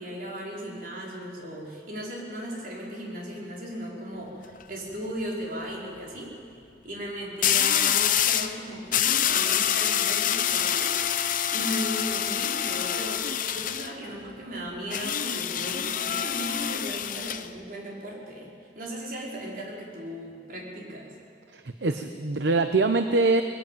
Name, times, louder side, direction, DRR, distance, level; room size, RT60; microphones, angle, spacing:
voice 1, 0.0-6.6 6.8-10.9 11.5-21.2, equal, 50° right, -3 dB, 4.9 m, -36 dB
sound 1, 4.3-4.6 7.4-8.6 8.9-13.9 14.9-17.5, left 10 dB, 50° left, 0.7 m, -26 dB
voice 2, 21.5-23.4, right 3 dB, 70° right, 8 dB, 0.8 m, -24 dB
20.5 x 15.0 x 9.2 m, 2.3 s
head